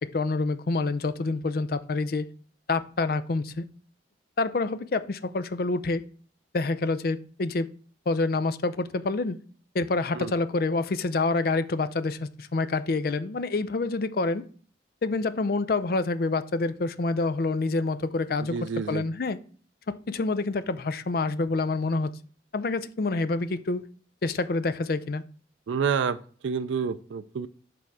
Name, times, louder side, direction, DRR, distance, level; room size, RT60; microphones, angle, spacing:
voice 1, 0.0-2.3 2.7-3.6 4.4-6.0 6.5-7.7 8.1-9.4 9.7-14.4 15.0-18.5 18.9-19.4 19.9-22.1 22.5-23.8 24.2-25.2, left 3 dB, 50° left, 0.4 m, -27 dB
voice 2, 18.4-19.1 25.7-27.5, right 6 dB, 90° right, 0.4 m, -29 dB
6.7 x 3.6 x 6.2 m
head